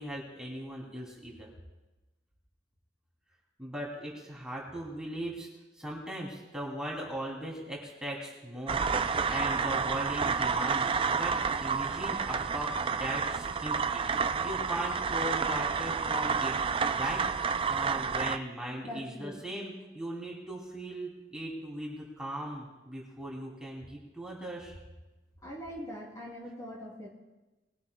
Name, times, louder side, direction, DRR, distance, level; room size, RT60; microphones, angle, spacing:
voice 1, 0.0-1.5 3.6-5.5 5.7-16.5 16.9-17.2 17.5-24.8, right 1 dB, 5° right, -4 dB, 3.0 m, -39 dB
sound 1, 8.7-18.4, right 5 dB, 30° right, 0.4 m, -30 dB
voice 2, 18.8-19.4 25.4-27.1, equal, 20° left, -3 dB, 3.0 m, -42 dB
21.5 x 16.0 x 2.3 m, 1.1 s
head